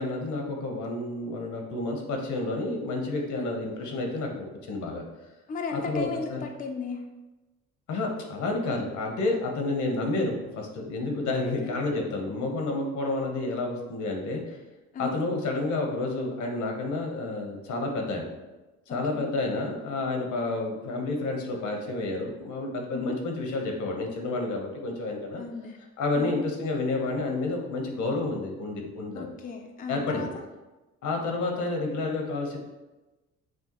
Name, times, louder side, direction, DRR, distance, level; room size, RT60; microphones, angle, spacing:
voice 1, 0.0-5.0 5.7-6.4 7.9-14.6 15.0-18.3 18.9-25.4 26.0-29.3 29.9-30.3 31.0-32.6, left 2 dB, 75° left, 2 dB, 1.0 m, -30 dB
voice 2, 5.5-7.0 11.4-11.8 14.9-15.1 19.1-19.3 22.9-23.2 25.4-25.8 26.1-26.3 29.1-30.3, left 5 dB, 30° left, 3 dB, 0.4 m, -35 dB
6.2 x 2.3 x 3.0 m, 1.1 s
cardioid pair, 90°, 30 cm